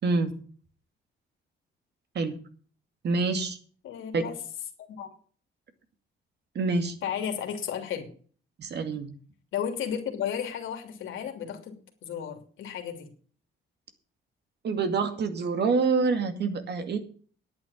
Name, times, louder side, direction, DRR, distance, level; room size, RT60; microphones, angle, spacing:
voice 1, 0.0-0.3 2.1-2.4 3.0-3.6 4.1-4.2 6.5-7.0 8.6-9.1 14.6-17.0, right 4 dB, 60° right, 8 dB, 2.4 m, -26 dB
voice 2, 3.8-4.4 4.8-5.1 7.0-8.1 9.5-11.8 12.0-13.1, left 8 dB, 80° left, 4 dB, 3.0 m, -33 dB
10.0 x 9.2 x 7.2 m, 0.44 s
cardioid pair, 90°, 20 cm